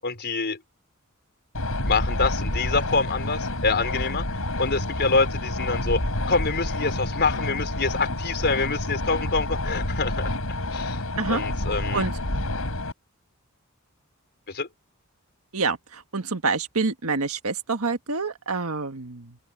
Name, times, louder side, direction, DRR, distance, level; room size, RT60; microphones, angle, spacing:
voice 1, 0.0-0.6 1.8-4.2 4.6-6.0 6.3-10.4 10.7-11.0 11.3-12.0 14.5-14.7, left 4 dB, 50° left, 4.8 m, -26 dB
sound 1, 1.5-12.9, left 1 dB, 70° left, 5.9 m, -28 dB
voice 2, 11.7-12.1 15.5-19.4, right 4 dB, 75° right, 1.7 m, -27 dB
open air
head